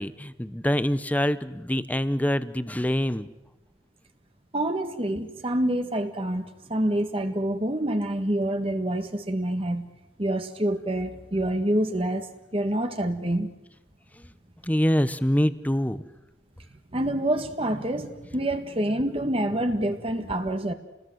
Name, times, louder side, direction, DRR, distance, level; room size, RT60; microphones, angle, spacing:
voice 1, 0.0-3.3 14.2-14.3 14.6-16.0, equal, 10° left, 13 dB, 0.9 m, -25 dB
voice 2, 4.5-9.9 10.2-12.3 12.5-13.5 16.9-20.7, right 1 dB, 30° right, 6 dB, 1.7 m, -27 dB
29.0 x 20.0 x 8.0 m, 0.90 s
head